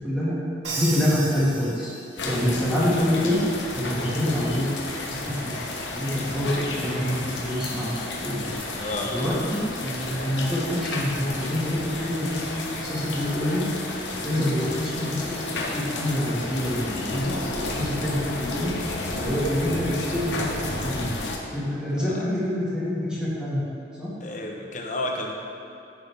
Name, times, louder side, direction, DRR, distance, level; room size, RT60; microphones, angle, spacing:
voice 1, 0.0-0.4 0.8-1.9 2.2-3.4 3.8-4.7 5.2-5.5 5.9-8.5 9.0-13.6 14.2-17.2 17.5-18.7 19.2-20.5 20.8-21.2 21.5-23.6 24.0-24.1, left 1 dB, 5° right, -9 dB, 1.8 m, -26 dB
Crash cymbal, 0.6-2.4, right 3 dB, 75° right, 1.4 m, -33 dB
sound 1, 2.2-21.4, left 2 dB, 80° left, 1.0 m, -32 dB
voice 2, 8.8-9.4 19.2-19.3 21.9-22.2 24.2-25.3, left 1 dB, 45° left, 1 dB, 0.9 m, -32 dB
9.7 x 6.5 x 3.5 m, 2.7 s
head